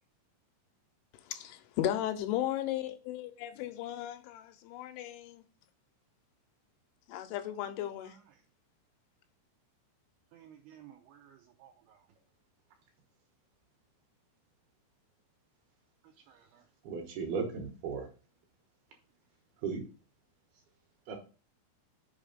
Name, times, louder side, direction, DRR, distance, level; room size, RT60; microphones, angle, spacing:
voice 1, 1.3-5.4 7.1-8.1, left 12 dB, 85° left, 3.1 m, -35 dB
voice 2, 7.8-8.4 10.3-12.0 16.3-16.7, right 10 dB, 85° right, 2.3 m, -57 dB
voice 3, 16.8-18.1 19.6-19.8 21.1-21.2, right 5 dB, 70° right, 2.5 m, -35 dB
6.8 x 4.9 x 5.1 m
omnidirectional pair, 5.6 m